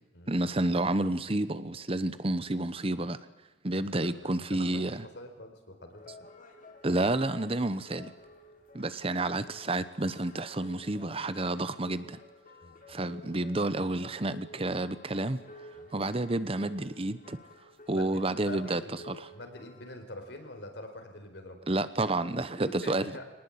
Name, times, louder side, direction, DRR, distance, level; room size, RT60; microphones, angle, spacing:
voice 1, 0.3-3.2 3.6-5.1 6.8-8.1 8.7-12.2 12.9-15.4 15.9-17.4 17.9-18.8 19.1-19.3 21.7-23.1, right 2 dB, 30° right, 13 dB, 1.0 m, -30 dB
voice 2, 3.8-6.1 12.6-13.0 15.7-15.9 17.9-21.6 22.6-23.3, left 1 dB, 65° left, 6 dB, 4.3 m, -46 dB
sound 1, 5.9-20.0, left 2 dB, 45° left, 3.5 m, -52 dB
24.0 x 19.5 x 8.6 m, 1.1 s
head